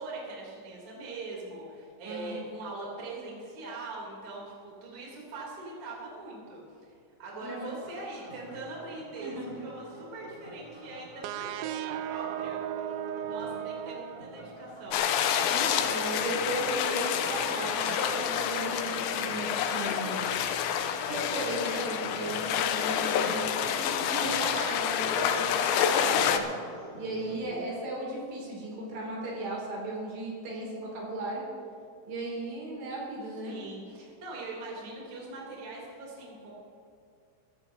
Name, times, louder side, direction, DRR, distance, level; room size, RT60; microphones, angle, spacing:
voice 1, 0.0-12.6 13.3-15.0 27.2-27.7 33.4-36.5, right 2 dB, 40° right, -4 dB, 4.3 m, -42 dB
voice 2, 2.1-2.4 7.4-7.7 9.2-9.5 15.5-20.4 21.0-26.5 27.0-31.4 32.1-33.6, right 2 dB, 70° right, -3 dB, 5.4 m, -36 dB
sound 1, 7.8-27.4, equal, 20° left, 3.9 m, -48 dB
sound 2, 11.2-14.8, right 10 dB, 85° right, 2.6 m, -36 dB
sound 3, 14.9-26.4, left 8 dB, 80° left, 3.0 m, -28 dB
23.0 x 14.5 x 2.9 m, 2.4 s
omnidirectional pair, 5.7 m